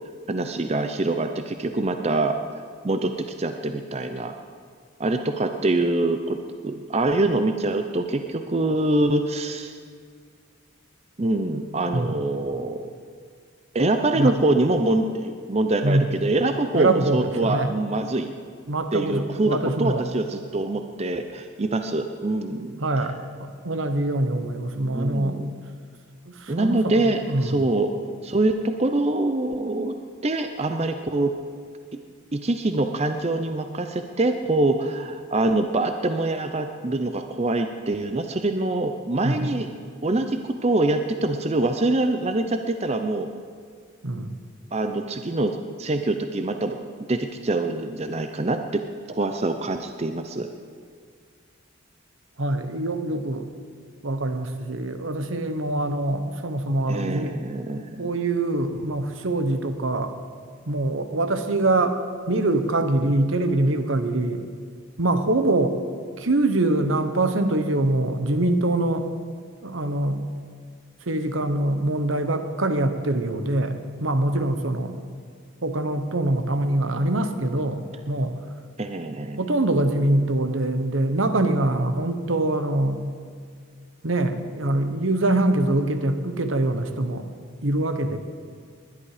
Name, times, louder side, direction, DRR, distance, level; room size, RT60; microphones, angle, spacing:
voice 1, 0.3-2.3 2.8-3.1 3.4-4.3 5.0-6.4 6.6-9.8 11.2-12.9 13.7-18.3 18.9-23.1 24.9-25.5 26.5-28.0 28.2-30.0 30.2-31.3 32.3-39.7 40.0-43.3 44.7-46.8 47.1-48.8 49.1-50.5 56.9-58.1 78.8-79.4, right 2 dB, 30° right, 7 dB, 0.6 m, -24 dB
voice 2, 16.7-17.7 18.7-20.0 22.8-25.4 26.3-27.5 39.2-39.5 44.0-44.4 52.4-53.5 54.0-57.3 58.0-60.1 60.7-62.0 62.2-64.4 65.0-65.7 66.2-69.1 69.6-70.2 71.1-74.9 75.6-78.3 79.4-83.0 84.0-87.3 87.6-88.2, right 2 dB, 70° right, 8 dB, 1.1 m, -24 dB
20.5 x 11.5 x 5.0 m, 2.1 s
head